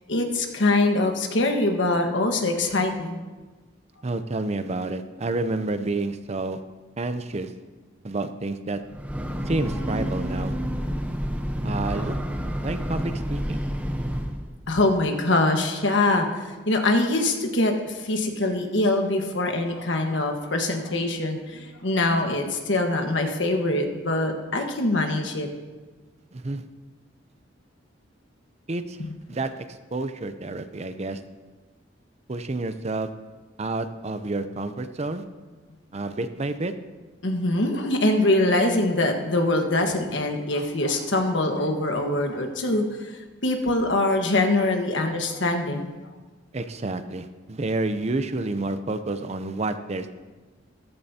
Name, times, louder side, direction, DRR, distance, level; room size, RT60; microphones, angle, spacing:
voice 1, 0.1-3.2 14.7-25.5 29.0-29.1 37.2-45.9, left 2 dB, 75° left, 4 dB, 1.4 m, -23 dB
voice 2, 4.0-6.6 7.0-7.5 8.0-8.8 9.5-10.5 11.6-12.2 12.6-13.6 26.3-26.6 28.7-29.0 29.3-31.2 32.3-33.1 33.6-35.2 35.9-36.7 46.5-50.1, right 2 dB, 35° right, 10 dB, 0.6 m, -29 dB
Breathing / Train, 8.8-14.5, equal, 10° right, 0.8 m, -29 dB
14.0 x 13.5 x 2.8 m, 1.3 s
head